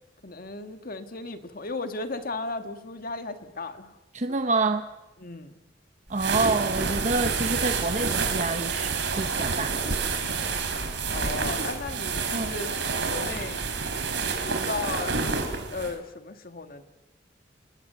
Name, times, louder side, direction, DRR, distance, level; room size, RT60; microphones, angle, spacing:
voice 1, 0.2-4.0 5.2-5.6 11.1-12.7 13.1-13.6 14.4-15.4 15.7-16.8, left 3 dB, 50° left, 8 dB, 2.0 m, -35 dB
voice 2, 4.1-4.8 6.1-9.8 11.6-11.7 12.3-12.5, right 3 dB, 40° right, 7 dB, 0.9 m, -27 dB
sound 1, 6.1-15.9, right 4 dB, 70° right, 3.8 m, -28 dB
28.5 x 20.5 x 7.0 m, 1.0 s
head